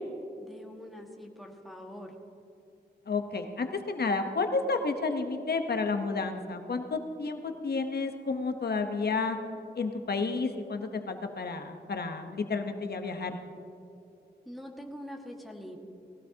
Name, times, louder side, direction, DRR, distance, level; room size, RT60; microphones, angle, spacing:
voice 1, 0.4-2.2 14.4-15.8, equal, ahead, 0 dB, 1.7 m, -44 dB
voice 2, 3.1-9.4 9.8-13.4, left 4 dB, 65° left, 6 dB, 1.0 m, -31 dB
19.5 x 16.5 x 2.9 m, 2.6 s
wide cardioid pair, 80°, 18 cm